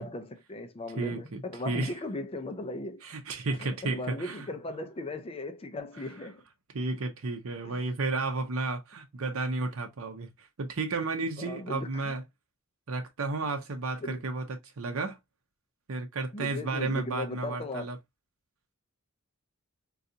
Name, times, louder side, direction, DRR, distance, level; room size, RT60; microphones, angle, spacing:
voice 1, 0.0-3.0 3.5-6.4 7.6-7.8 11.4-12.1 14.0-14.2 16.3-18.0, left 2 dB, 25° left, 0.4 m, -38 dB
voice 2, 1.0-1.9 3.0-4.4 6.7-12.2 12.9-15.2 15.9-18.0, right 3 dB, 70° right, 0.7 m, -32 dB
3.8 x 2.3 x 2.7 m
head